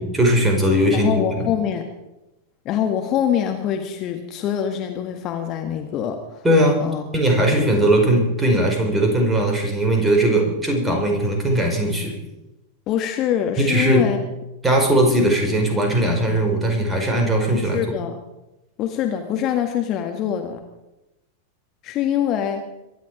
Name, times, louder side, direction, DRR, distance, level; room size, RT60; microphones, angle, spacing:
voice 1, 0.0-1.1 1.4-1.5 6.4-6.8 7.1-12.2 13.6-14.1 14.6-17.8, right 1 dB, 10° right, 1 dB, 5.2 m, -19 dB
voice 2, 0.9-1.9 2.7-6.4 6.8-7.0 7.4-7.7 12.9-14.2 17.5-18.1 18.8-20.6 21.8-22.6, left 9 dB, 35° left, 5 dB, 1.7 m, -24 dB
23.5 x 11.5 x 5.1 m, 0.97 s
figure-of-eight pair, 90°, 0 cm